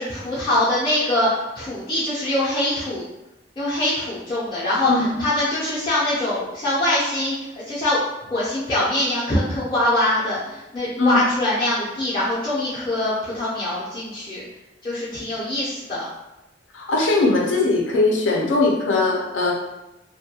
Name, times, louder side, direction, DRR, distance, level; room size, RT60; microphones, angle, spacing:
voice 1, 0.0-3.1 3.6-8.0 8.3-14.4 14.8-16.0, left 1 dB, 25° left, -10 dB, 0.5 m, -23 dB
voice 2, 16.7-19.5, left 3 dB, 80° left, -1 dB, 0.5 m, -20 dB
2.3 x 2.1 x 2.7 m, 0.95 s
head